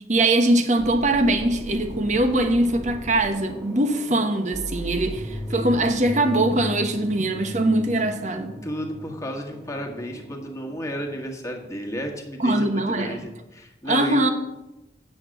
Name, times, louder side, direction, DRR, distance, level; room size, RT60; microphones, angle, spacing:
voice 1, 0.1-8.5 12.4-13.2 13.9-14.3, right 1 dB, 40° right, 7 dB, 1.0 m, -22 dB
sound 1, 0.8-11.2, equal, ahead, 1.3 m, -37 dB
voice 2, 5.1-6.1 8.6-14.3, equal, 15° left, 1 dB, 1.5 m, -33 dB
8.5 x 6.5 x 7.6 m, 0.95 s
head